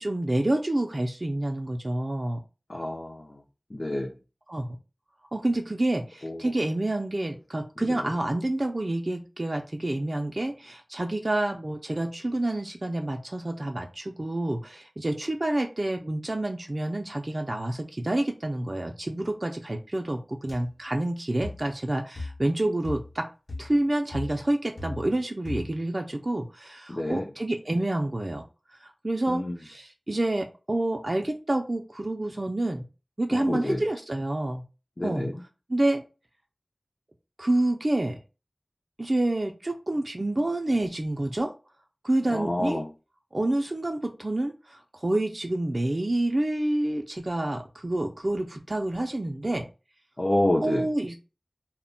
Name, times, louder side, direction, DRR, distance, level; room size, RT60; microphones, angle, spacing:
voice 1, 0.0-2.4 4.5-4.8 5.3-23.2 23.6-28.4 28.7-32.8 33.2-34.6 35.0-35.3 35.7-36.0 37.4-38.2 39.0-41.5 42.0-42.8 43.3-49.7 50.6-51.2, right 1 dB, 45° right, 3 dB, 0.3 m, -28 dB
voice 2, 2.7-3.2 3.7-4.1 6.2-6.3 26.9-27.2 29.3-29.5 33.3-33.8 35.0-35.3 42.3-42.8 50.2-50.8, left 1 dB, 50° left, 0 dB, 0.4 m, -27 dB
sound 1, 20.5-20.6 21.4-21.7 22.2-22.5 22.8-23.2 23.5-23.8 24.1-25.2 25.5-25.8, left 2 dB, 70° left, 0.8 m, -37 dB
2.1 x 2.0 x 3.7 m, 0.32 s
wide cardioid pair, 45°, 0 cm